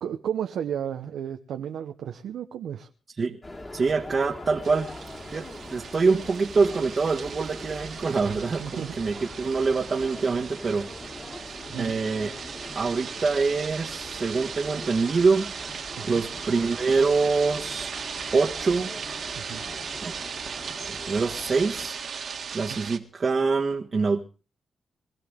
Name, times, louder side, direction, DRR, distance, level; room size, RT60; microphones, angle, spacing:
voice 1, 0.0-2.9 8.6-8.9 11.7-11.9 16.0-16.2 19.3-19.7 22.7-22.8, right 9 dB, 90° right, 0.9 m, -33 dB
sound 1, 3.4-21.9, left 2 dB, 30° left, 2.8 m, -42 dB
voice 2, 3.7-4.9 5.3-8.6 9.0-10.9 11.8-12.3 12.7-15.5 16.0-17.9 18.3-18.9 20.0-20.1 20.9-22.0 22.5-24.3, right 4 dB, 45° right, 1.3 m, -25 dB
sound 2, 4.6-23.0, right 6 dB, 65° right, 1.9 m, -37 dB
23.0 x 15.0 x 3.7 m
cardioid pair, 80°, 0 cm